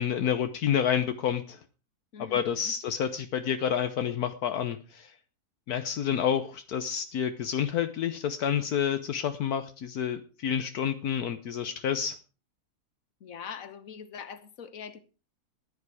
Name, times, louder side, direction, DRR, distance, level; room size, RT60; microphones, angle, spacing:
voice 1, 0.0-1.6 2.2-5.1 5.7-12.2, left 8 dB, 75° left, 1.4 m, -29 dB
voice 2, 2.1-2.7 13.2-15.0, left 7 dB, 60° left, 1.6 m, -43 dB
16.0 x 10.5 x 4.8 m
omnidirectional pair, 1.6 m